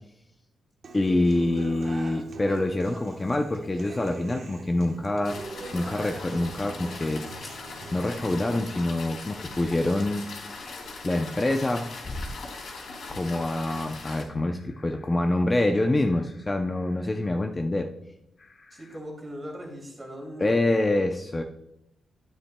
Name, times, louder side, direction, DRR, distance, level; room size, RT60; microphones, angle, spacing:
Human voice / Acoustic guitar, 0.8-8.8, right 3 dB, 50° right, 1.0 m, -43 dB
voice 1, 0.9-5.4 5.7-7.2 7.9-10.2 11.0-11.9 13.1-17.9 20.4-21.4, left 2 dB, 20° left, 4 dB, 0.5 m, -26 dB
sound 1, 5.2-14.2, left 3 dB, 70° left, 2.6 m, -40 dB
sound 2, 12.0-19.0, left 1 dB, 40° left, 0.9 m, -46 dB
voice 2, 18.7-20.5, equal, 25° right, 0 dB, 2.4 m, -39 dB
10.0 x 9.7 x 2.2 m, 0.83 s
cardioid pair, 125°, 0 cm